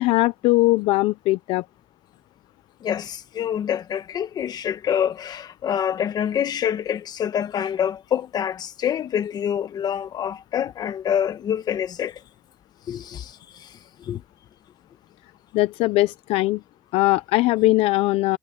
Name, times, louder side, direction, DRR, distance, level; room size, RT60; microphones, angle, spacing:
voice 1, 0.0-1.7 15.5-16.6 16.9-18.4, left 19 dB, 60° left, 0.6 m, -20 dB
voice 2, 2.8-12.2 12.9-14.2, left 9 dB, 35° left, 1.5 m, -26 dB
cardioid pair, 145°, 11 cm